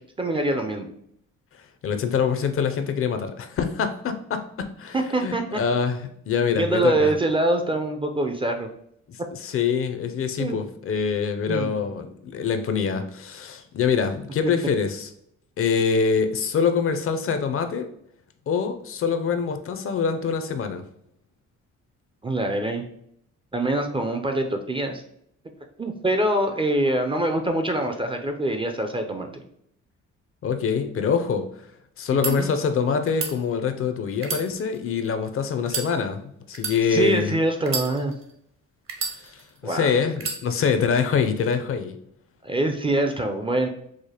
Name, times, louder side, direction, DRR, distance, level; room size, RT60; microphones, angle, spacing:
voice 1, 0.2-0.9 4.9-5.6 6.5-8.7 10.4-10.6 11.5-11.8 22.2-22.8 23.5-25.0 25.8-29.4 32.2-32.5 36.9-38.1 39.6-39.9 42.4-43.7, right 1 dB, 20° right, 5 dB, 0.4 m, -24 dB
voice 2, 1.8-7.1 9.1-15.1 15.6-17.9 18.5-20.8 30.4-31.5 32.0-37.3 39.2-42.0, left 6 dB, 45° left, 8 dB, 0.5 m, -25 dB
sound 1, 32.0-32.3 33.1-33.3 34.2-35.1 35.6-35.9 36.5-36.8 37.6-38.3 38.9-39.6 40.2-40.4, right 4 dB, 45° right, 0.8 m, -30 dB
4.8 x 2.1 x 2.8 m, 0.72 s
cardioid pair, 90°, 30 cm